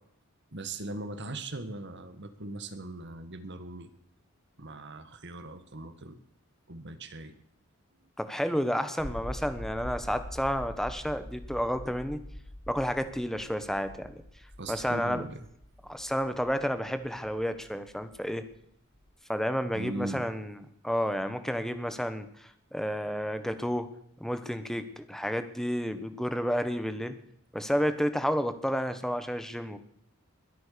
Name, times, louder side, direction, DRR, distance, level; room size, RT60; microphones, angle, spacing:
voice 1, 0.5-3.9 4.6-6.2 6.7-7.4 8.0-8.1 14.6-15.5 19.7-20.3, right 2 dB, 55° right, 10 dB, 1.7 m, -39 dB
voice 2, 8.2-12.2 12.7-14.2 14.7-15.2 15.9-18.4 19.3-20.5 20.8-23.9 24.2-27.2 27.5-29.8, equal, ahead, 10 dB, 1.1 m, -31 dB
sound 1, 9.0-19.1, equal, 50° left, 2.4 m, -44 dB
21.5 x 9.0 x 6.8 m, 0.71 s
head